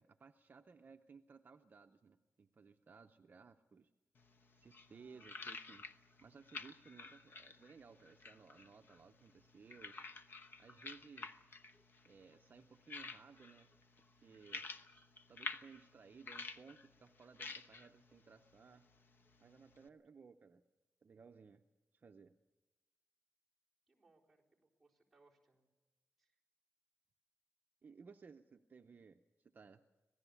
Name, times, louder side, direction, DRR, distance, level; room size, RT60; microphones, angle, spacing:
voice 1, 0.0-3.9 4.6-5.8 6.2-10.0 10.6-11.4 12.0-13.7 14.2-14.7 15.3-18.8 19.4-20.6 21.0-21.6 21.9-22.3 27.8-29.8, right 5 dB, 40° right, 6 dB, 0.6 m, -60 dB
sound 1, 4.2-19.9, left 4 dB, 50° left, 1.0 m, -52 dB
voice 2, 4.9-5.3 23.9-25.7 26.2-26.4, right 3 dB, 5° right, -4 dB, 4.1 m, -72 dB
26.0 x 18.0 x 7.0 m, 1.1 s
wide cardioid pair, 170°, 5 cm